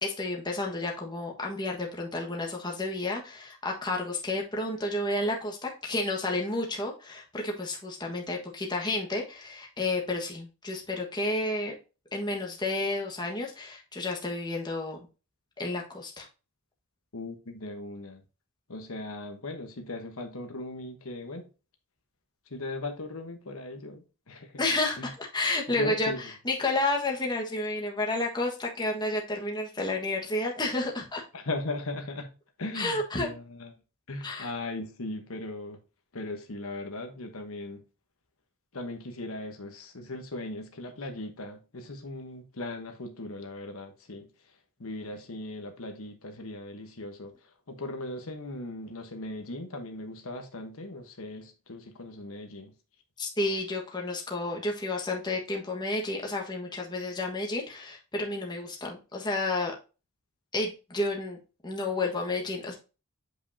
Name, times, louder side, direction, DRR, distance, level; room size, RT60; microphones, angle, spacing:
voice 1, 0.0-11.7 12.1-15.0 15.6-16.3 24.6-26.1 26.4-31.2 32.7-33.3 34.2-34.5 53.2-59.7 60.5-61.4 61.6-62.8, left 2 dB, 20° left, 1.4 m, -31 dB
voice 2, 17.1-18.2 18.7-21.5 22.5-24.6 25.0-25.1 25.7-26.2 31.3-32.3 32.6-33.7 34.1-35.8 36.1-37.8 38.7-44.3 44.8-52.7, left 2 dB, 75° left, 1.1 m, -38 dB
8.0 x 5.2 x 2.7 m
head